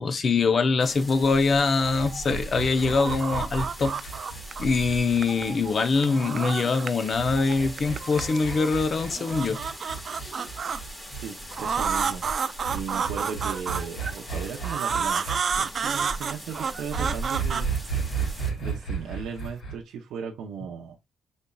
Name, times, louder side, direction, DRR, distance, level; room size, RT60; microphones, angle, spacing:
voice 1, 0.0-3.9 4.6-9.6 10.2-10.3, left 4 dB, 45° left, 0.7 m, -23 dB
sound 1, 0.8-18.5, right 1 dB, 20° left, 1.7 m, -40 dB
sound 2, 1.8-6.2 7.1-11.3 12.6-15.4 16.9-19.7, right 6 dB, 65° left, 2.6 m, -34 dB
sound 3, 1.9-2.4 2.7-4.8 5.1-7.1 7.3-8.7 9.1-10.8 11.5-14.1 14.6-18.4, right 6 dB, 50° right, 0.4 m, -30 dB
voice 2, 11.1-12.2 12.7-17.7 18.6-21.0, right 7 dB, 80° right, 0.7 m, -36 dB
5.3 x 4.0 x 2.3 m
cardioid pair, 90°, 0 cm